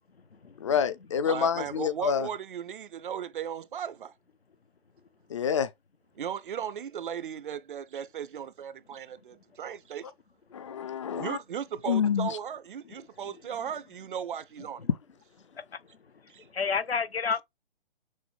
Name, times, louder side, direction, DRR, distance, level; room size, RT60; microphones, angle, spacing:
voice 1, 0.6-2.3 5.3-5.7 10.5-11.4 11.9-12.4, left 7 dB, 35° left, 0.4 m, -27 dB
voice 2, 1.3-4.1 6.2-10.1 11.1-14.8 16.3-16.5, right 8 dB, 60° right, 0.5 m, -36 dB
voice 3, 16.4-17.4, left 5 dB, 90° left, 0.6 m, -30 dB
6.2 x 2.1 x 3.2 m
figure-of-eight pair, 135°, 30 cm